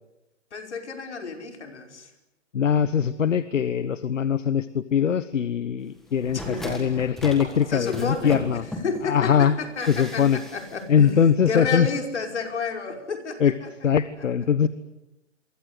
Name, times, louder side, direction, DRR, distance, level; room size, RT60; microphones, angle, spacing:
voice 1, 0.5-2.1 6.3-6.9 7.7-13.7, left 4 dB, 65° left, 5 dB, 5.5 m, -31 dB
voice 2, 2.5-8.6 9.0-9.5 9.9-10.4 10.9-11.9 13.4-13.5 13.8-14.7, left 8 dB, 85° left, 14 dB, 1.4 m, -22 dB
sound 1, 6.1-9.1 9.8-10.8 11.1-11.2, equal, ahead, 1.6 m, -37 dB
27.5 x 24.0 x 8.2 m, 0.95 s
hypercardioid pair, 175°, 37 cm